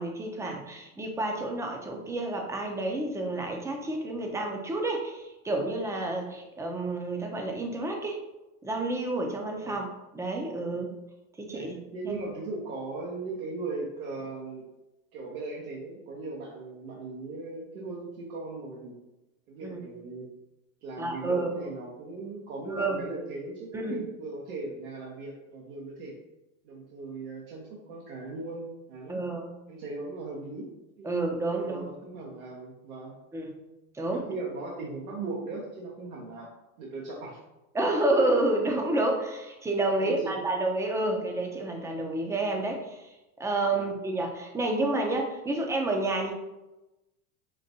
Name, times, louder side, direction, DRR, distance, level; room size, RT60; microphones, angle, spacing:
voice 1, 0.0-8.2 8.6-9.9 10.1-10.9 11.4-11.8 12.0-12.1 19.6-19.8 21.0-21.5 22.7-23.0 23.7-24.0 29.1-29.5 31.0-31.8 33.3-33.5 33.9-34.2 37.7-43.1 43.4-46.3, right 2 dB, 5° right, 2 dB, 0.5 m, -29 dB
voice 2, 11.5-14.6 15.1-18.9 19.5-20.3 20.8-26.1 26.6-29.2 29.7-30.7 31.0-31.1 31.6-33.1 34.1-36.5 36.8-37.4 39.9-40.3 43.7-43.9, right 3 dB, 85° right, -3 dB, 1.0 m, -38 dB
5.2 x 2.5 x 2.7 m, 1.0 s
supercardioid pair, 110°, 42 cm